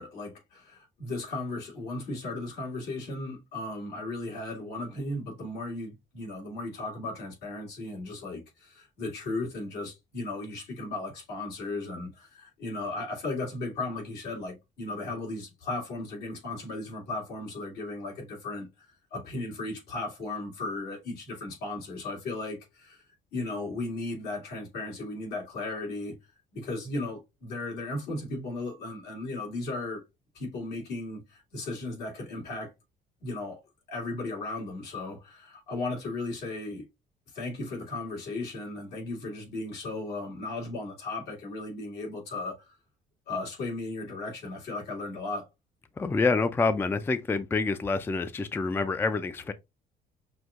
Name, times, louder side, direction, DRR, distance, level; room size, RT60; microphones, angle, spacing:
voice 1, 0.0-23.0 23.3-26.2 26.5-30.0 30.3-32.7 33.2-33.6 33.9-36.9 37.3-42.8 43.3-45.5, left 2 dB, 75° left, 2.2 m, -36 dB
voice 2, 46.0-49.5, left 4 dB, 15° left, 0.3 m, -27 dB
6.1 x 2.7 x 2.4 m
cardioid pair, 110°, 17 cm